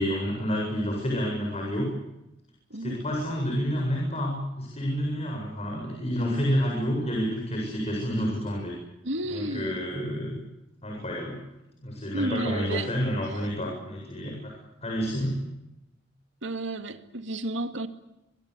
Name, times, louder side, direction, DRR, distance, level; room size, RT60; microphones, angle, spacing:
voice 1, 0.0-1.9 2.8-8.7 9.3-10.4 10.8-11.4 11.8-14.6 14.8-15.4, equal, 35° left, 7.8 m, -29 dB
voice 2, 9.0-9.9 12.1-12.9 16.4-17.9, right 2 dB, 75° right, 2.4 m, -32 dB
28.5 x 24.5 x 8.4 m
head